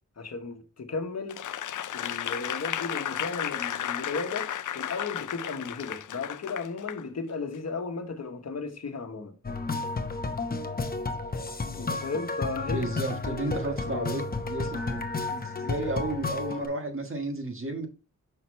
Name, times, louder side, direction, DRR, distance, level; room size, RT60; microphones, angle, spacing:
voice 1, 0.2-1.4 1.9-9.3 11.8-12.9 13.3-13.4 13.9-14.1, left 4 dB, 55° left, 1.2 m, -35 dB
Applause / Crowd, 1.3-7.0 7.5-7.7, left 10 dB, 75° left, 0.5 m, -33 dB
sound 1, 9.4-16.7, left 3 dB, 30° left, 0.8 m, -32 dB
voice 2, 12.7-17.9, right 2 dB, 40° right, 1.6 m, -33 dB
5.8 x 5.8 x 3.2 m
wide cardioid pair, 85°, 31 cm